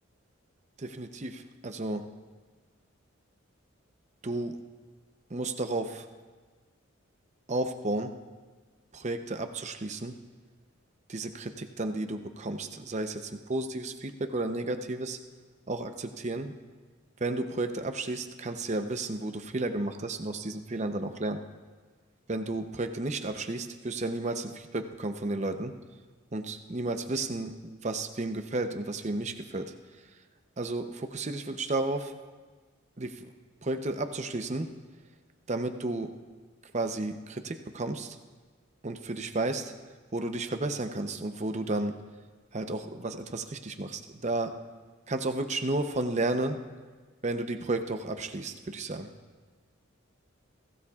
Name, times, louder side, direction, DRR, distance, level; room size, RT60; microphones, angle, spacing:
voice 1, 0.8-2.0 4.2-4.6 5.3-6.0 7.5-8.1 8.9-10.2 11.1-15.2 15.7-16.5 17.2-21.4 22.3-25.7 26.3-29.7 30.6-32.1 33.0-33.3 33.6-34.7 35.5-36.1 36.6-38.2 38.8-39.7 40.1-42.0 42.5-44.6 45.1-46.6 47.2-49.1, right 2 dB, 35° right, 7 dB, 0.7 m, -32 dB
22.5 x 16.0 x 2.4 m, 1.4 s
head